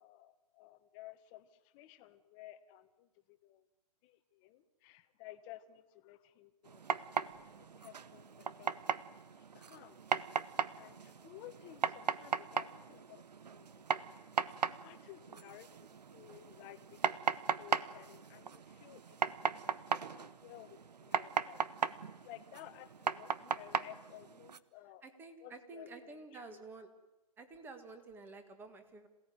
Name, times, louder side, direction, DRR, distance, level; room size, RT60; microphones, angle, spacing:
voice 1, 0.0-3.6 4.0-8.8 9.5-10.0 10.8-13.3 13.5-14.1 14.6-19.7 20.0-21.6 22.2-25.0 25.4-26.6, left 14 dB, 20° left, 10 dB, 1.2 m, -55 dB
sound 1, 6.7-24.6, right 6 dB, 80° right, 1.3 m, -38 dB
voice 2, 25.0-26.9 27.4-29.1, right 3 dB, 10° right, 8 dB, 1.8 m, -51 dB
27.0 x 17.5 x 9.5 m, 1.1 s
hypercardioid pair, 155°, 21 cm